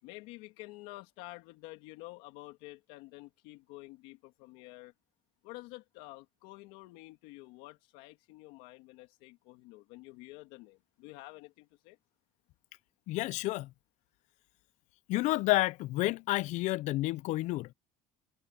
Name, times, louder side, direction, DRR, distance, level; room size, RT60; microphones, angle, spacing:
voice 1, 0.0-4.9 5.4-12.0, left 20 dB, 80° left, 2.4 m, -49 dB
voice 2, 13.1-13.7 15.1-17.7, left 18 dB, 60° left, 0.6 m, -30 dB
cardioid pair, 120°, 14 cm